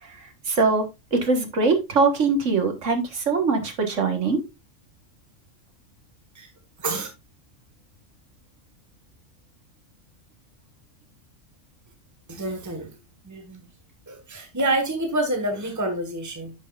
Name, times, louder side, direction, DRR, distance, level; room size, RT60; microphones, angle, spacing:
voice 1, 0.5-0.9 1.1-4.4, right 4 dB, 75° right, 5 dB, 1.9 m, -22 dB
voice 2, 12.3-12.9 13.2-13.6 14.1-16.5, right 1 dB, 15° right, 4 dB, 1.5 m, -27 dB
10.0 x 6.4 x 2.5 m, 0.23 s
omnidirectional pair, 1.3 m